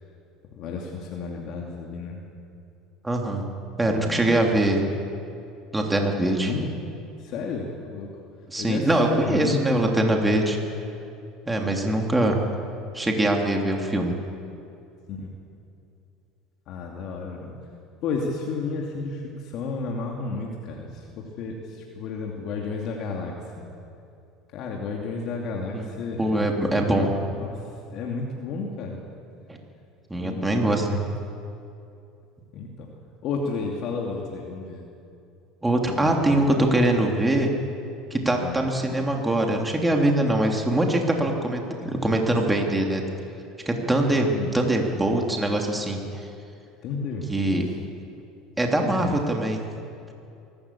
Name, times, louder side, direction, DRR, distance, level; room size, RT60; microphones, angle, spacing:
voice 1, 0.6-2.2 3.8-4.5 6.3-6.7 7.2-8.1 8.6-9.8 11.6-11.8 15.1-15.4 16.7-17.6 18.0-23.6 24.5-29.0 30.2-30.7 32.5-32.9 33.2-34.8 35.9-36.6 38.4-38.6 44.3-44.5 46.8-47.8 48.8-49.2, left 4 dB, 60° left, 0 dB, 2.6 m, -32 dB
voice 2, 3.0-3.4 3.8-4.8 5.7-6.5 8.5-10.6 11.5-12.4 12.9-14.1 25.7-25.8 26.2-27.1 29.5-29.6 30.1-31.0 35.6-37.5 38.1-43.0 43.6-46.0 47.3-47.7 48.6-49.6, right 1 dB, 10° right, 1 dB, 3.1 m, -23 dB
23.5 x 13.5 x 8.6 m, 2.6 s
supercardioid pair, 90°, 0 cm